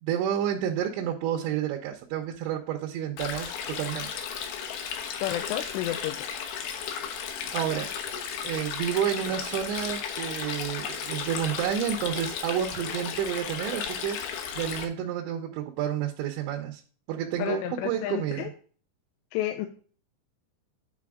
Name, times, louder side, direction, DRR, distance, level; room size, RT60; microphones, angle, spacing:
voice 1, 0.0-4.1 7.5-7.9 8.4-16.8 17.1-18.5, right 9 dB, 85° right, 1 dB, 3.1 m, -30 dB
Stream, 3.2-14.8, left 7 dB, 70° left, 2.7 m, -34 dB
voice 2, 5.2-6.2 17.4-18.5 19.3-19.7, left 12 dB, 90° left, 6 dB, 2.9 m, -31 dB
9.7 x 4.2 x 3.5 m, 0.42 s
omnidirectional pair, 5.1 m